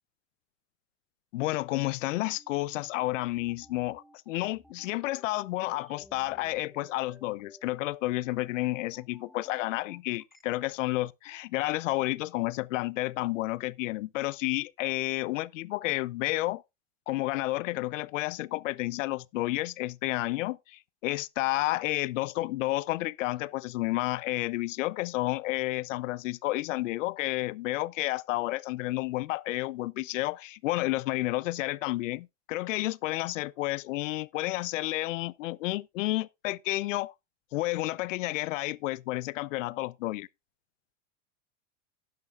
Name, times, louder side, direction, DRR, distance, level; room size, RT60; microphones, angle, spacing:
voice 1, 1.3-16.6 17.1-37.1 37.5-40.3, left 18 dB, 85° left, 0.6 m, -31 dB
sound 1, 2.0-10.4, equal, ahead, 0.8 m, -58 dB
12.0 x 10.5 x 2.4 m
supercardioid pair, 120°, 37 cm